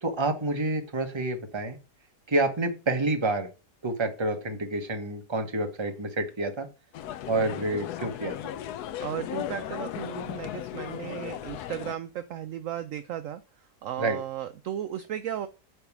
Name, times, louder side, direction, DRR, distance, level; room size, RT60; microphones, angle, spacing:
voice 1, 0.0-1.8 2.3-3.5 3.8-6.7 7.3-8.5 14.0-14.2, right 2 dB, 20° right, 5 dB, 1.0 m, -28 dB
sound 1, 6.9-12.0, left 11 dB, 75° left, 1.0 m, -36 dB
voice 2, 7.3-7.8 9.0-13.4 13.8-15.5, right 10 dB, 70° right, 10 dB, 0.8 m, -35 dB
8.9 x 3.6 x 6.0 m, 0.32 s
omnidirectional pair, 1.8 m